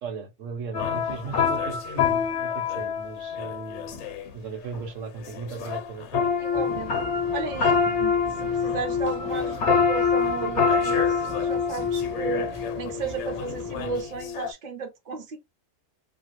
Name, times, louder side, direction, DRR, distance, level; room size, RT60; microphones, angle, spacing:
voice 1, 0.0-3.9 4.3-6.5, right 5 dB, 75° right, 1.3 m, -37 dB
sound 1, 0.7-4.3 4.7-4.9 5.2-14.5, left 6 dB, 65° left, 0.9 m, -26 dB
voice 2, 6.4-6.9 7.3-12.5 12.8-15.4, right 4 dB, 50° right, 0.6 m, -34 dB
sound 2, 6.5-14.0, left 3 dB, 30° left, 0.4 m, -40 dB
2.7 x 2.4 x 2.9 m
omnidirectional pair, 1.3 m